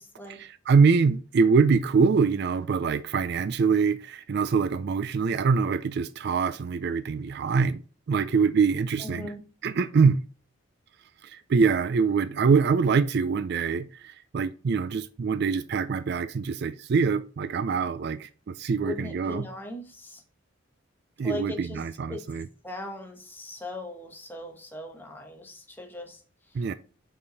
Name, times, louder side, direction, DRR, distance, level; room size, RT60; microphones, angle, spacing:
voice 1, 0.3-7.8 8.1-9.3 9.6-10.2 11.2-19.5 21.2-22.5 26.5-26.7, right 5 dB, 50° right, 0.3 m, -24 dB
voice 2, 9.0-9.4 18.8-20.2 21.2-21.8 22.1-22.3 22.6-26.2, left 2 dB, 10° left, 1.1 m, -38 dB
5.5 x 4.9 x 3.9 m
head